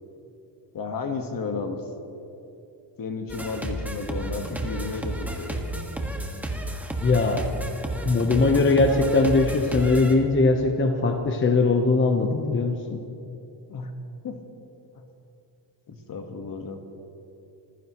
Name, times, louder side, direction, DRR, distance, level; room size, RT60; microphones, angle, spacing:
voice 1, 0.7-1.8 3.0-5.6 13.7-13.9 14.2-14.4 14.9-15.0 15.9-16.8, left 4 dB, 50° left, 5 dB, 1.6 m, -33 dB
sound 1, 3.3-10.2, right 1 dB, 5° right, 1.6 m, -32 dB
voice 2, 7.0-7.5 8.0-13.0, left 3 dB, 25° left, 4 dB, 1.0 m, -21 dB
26.5 x 15.5 x 3.1 m, 2.8 s
cardioid pair, 130°, 44 cm